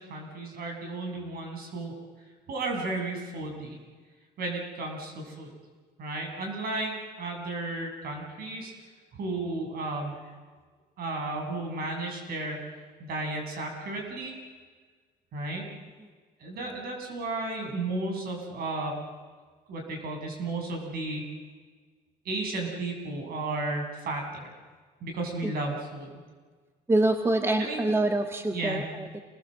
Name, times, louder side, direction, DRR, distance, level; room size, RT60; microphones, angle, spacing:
voice 1, 0.0-1.9 2.5-3.8 4.4-5.5 6.0-8.7 9.1-10.1 11.0-12.6 13.0-14.4 15.3-15.6 16.4-19.0 19.7-21.2 22.3-24.5 25.0-26.2 27.6-27.9 28.5-28.8, right 2 dB, 65° right, 2 dB, 7.1 m, -33 dB
voice 2, 26.9-29.2, right 2 dB, 15° right, 5 dB, 1.7 m, -26 dB
28.5 x 20.0 x 7.7 m, 1.5 s
cardioid pair, 110°, 17 cm